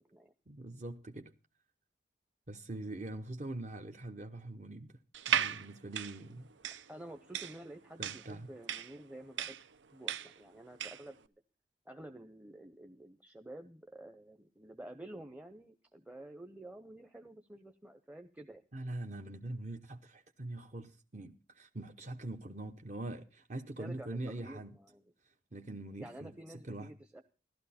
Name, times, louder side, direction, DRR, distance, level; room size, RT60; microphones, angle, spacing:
voice 1, 0.5-1.3 2.5-5.0 5.3-6.5 8.0-8.5 18.7-24.8 25.2-26.3 26.6-26.9, right 2 dB, 40° right, 0.9 m, -43 dB
sound 1, 5.1-11.1, right 8 dB, 90° right, 0.8 m, -36 dB
voice 2, 6.9-9.6 9.9-11.3 11.9-18.6 23.8-25.0 26.0-27.2, right 1 dB, 10° right, 0.7 m, -50 dB
15.0 x 12.0 x 4.2 m
head